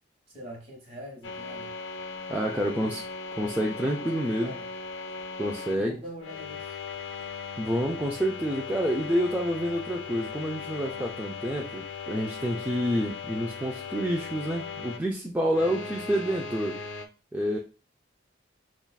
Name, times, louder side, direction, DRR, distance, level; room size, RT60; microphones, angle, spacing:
voice 1, 0.3-1.7 2.5-2.9 3.8-4.7 5.7-6.7 15.6-16.0, equal, 35° right, 0 dB, 1.3 m, -44 dB
sound 1, 1.2-5.8 6.2-15.0 15.4-17.1, left 5 dB, 65° left, 0.5 m, -38 dB
voice 2, 2.3-3.0 3.4-4.6 5.4-6.0 7.6-16.8 17.3-17.6, equal, 10° right, -1 dB, 0.3 m, -28 dB
5.3 x 2.4 x 2.2 m, 0.34 s
head